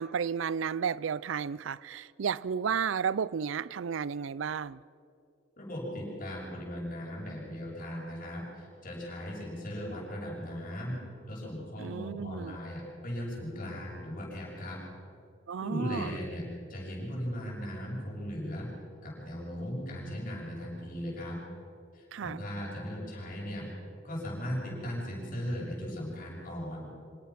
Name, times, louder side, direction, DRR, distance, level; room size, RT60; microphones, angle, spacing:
voice 1, 0.0-4.8 11.8-12.6 15.5-16.1 22.1-22.4, right 7 dB, 70° right, 0.4 m, -32 dB
voice 2, 5.6-14.8 15.6-18.7 19.0-21.4 21.9-23.7 24.0-26.9, equal, 45° left, 7.1 m, -38 dB
25.5 x 18.0 x 6.0 m
head